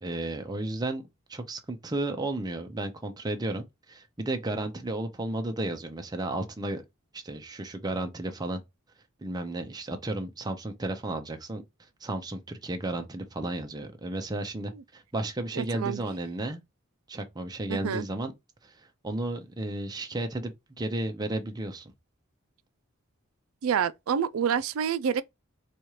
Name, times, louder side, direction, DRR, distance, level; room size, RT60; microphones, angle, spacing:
voice 1, 0.0-1.0 1.3-6.8 7.1-8.6 9.2-11.6 12.0-16.6 17.1-18.3 18.6-21.9, right 2 dB, 20° right, 0.5 m, -33 dB
voice 2, 15.6-16.0 17.7-18.0 23.6-25.2, right 7 dB, 75° right, 0.4 m, -27 dB
4.3 x 2.4 x 3.0 m
head